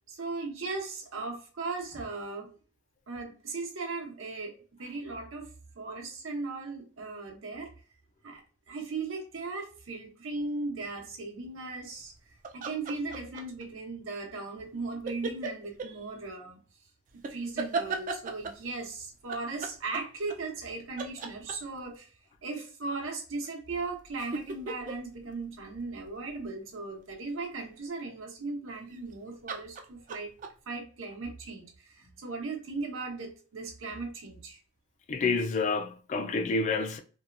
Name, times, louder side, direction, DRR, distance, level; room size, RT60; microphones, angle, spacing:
voice 1, 0.1-2.5 3.1-5.5 5.8-7.7 8.2-8.4 8.7-16.6 17.3-22.1 22.4-30.3 30.7-34.6, right 3 dB, 85° right, 0.8 m, -37 dB
sound 1, 12.4-13.6 15.1-15.9 17.2-18.7 19.3-20.7 21.0-21.9 23.7-26.4 28.8-29.1 29.5-30.5, right 4 dB, 40° right, 0.3 m, -36 dB
voice 2, 35.1-37.0, left 4 dB, 35° left, 0.3 m, -28 dB
2.7 x 2.2 x 2.4 m
head